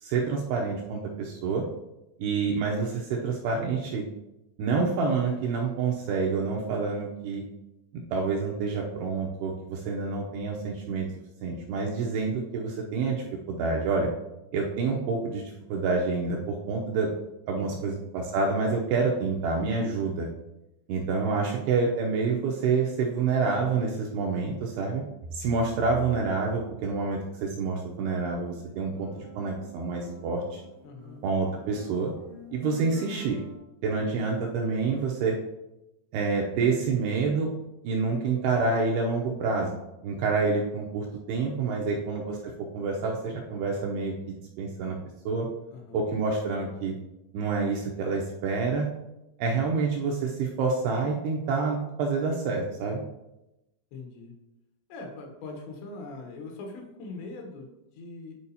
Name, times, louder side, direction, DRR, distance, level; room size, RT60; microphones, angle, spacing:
voice 1, 0.0-1.6 2.2-4.0 4.6-7.4 8.1-11.1 11.4-14.1 14.5-15.4 15.7-17.1 17.5-20.3 20.9-25.0 25.3-30.6 31.2-32.1 32.5-33.4 33.8-35.4 36.1-37.5 37.8-39.7 40.0-42.4 42.7-45.0 45.3-45.5 45.9-47.0 47.3-48.9 49.4-53.0, right 4 dB, 80° right, -1 dB, 2.4 m, -28 dB
voice 2, 17.5-18.0 30.8-31.2 41.7-42.1 45.7-46.0 53.9-54.4 54.9-58.4, left 3 dB, 75° left, 2 dB, 3.2 m, -42 dB
sound 1, 28.5-33.6, left 2 dB, 40° right, 0.9 m, -47 dB
11.0 x 4.6 x 2.8 m, 0.93 s
omnidirectional pair, 5.3 m